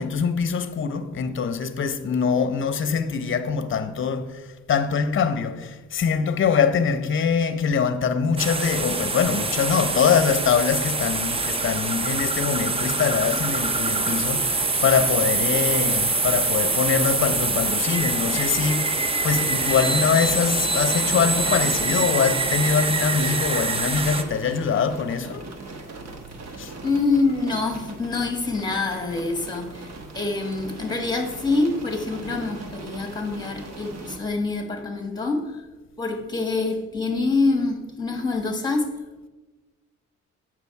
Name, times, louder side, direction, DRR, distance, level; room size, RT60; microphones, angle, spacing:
voice 1, 0.0-4.4 4.7-25.5 26.6-26.7, left 6 dB, 40° left, 0.8 m, -23 dB
sound 1, 8.4-24.2, right 3 dB, 20° right, 0.6 m, -24 dB
sound 2, 19.2-34.2, right 3 dB, 60° right, 1.2 m, -38 dB
voice 2, 26.8-29.9 30.1-35.6 36.0-38.9, left 3 dB, 15° left, 1.3 m, -25 dB
8.1 x 6.0 x 4.6 m
cardioid pair, 90°, 30 cm